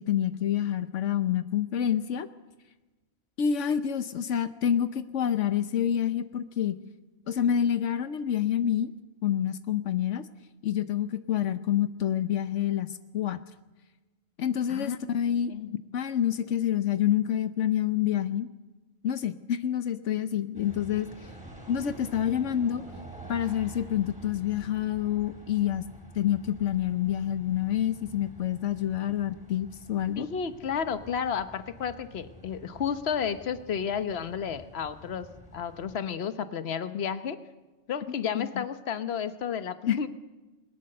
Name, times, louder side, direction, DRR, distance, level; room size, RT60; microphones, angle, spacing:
voice 1, 0.0-2.3 3.4-6.8 7.3-8.9 9.2-10.2 10.6-13.4 14.4-15.5 15.9-18.5 19.0-21.1 21.7-22.8 23.3-25.9 26.1-30.3 38.3-38.6 39.9-40.0, left 10 dB, 85° left, 11 dB, 1.2 m, -27 dB
sound 1, 20.5-36.0, right 1 dB, 5° right, 4.1 m, -48 dB
voice 2, 30.2-37.4 37.9-40.1, left 7 dB, 60° left, 11 dB, 1.2 m, -32 dB
21.0 x 20.5 x 6.6 m, 1.1 s
omnidirectional pair, 1.2 m